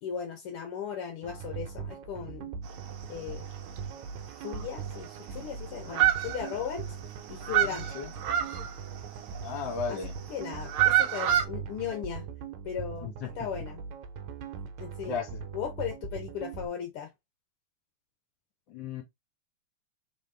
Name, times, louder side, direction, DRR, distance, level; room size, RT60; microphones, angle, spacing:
voice 1, 0.0-2.5 3.1-3.5 4.3-6.9 7.3-7.9 9.9-10.0 10.3-12.3 12.6-13.8 14.8-15.2 15.5-17.1, left 8 dB, 70° left, 1.4 m, -37 dB
sound 1, 1.2-16.7, right 6 dB, 80° right, 2.1 m, -41 dB
sound 2, 2.7-3.3 3.7-3.8 4.2-4.3 4.5-5.5 5.8-6.9 7.2-9.7 10.4-11.4, right 13 dB, 65° right, 1.4 m, -27 dB
voice 2, 7.6-8.1 9.4-10.2 13.0-13.3 15.1-15.5 18.7-19.0, left 6 dB, 50° left, 1.6 m, -35 dB
4.0 x 4.0 x 3.3 m
omnidirectional pair, 3.3 m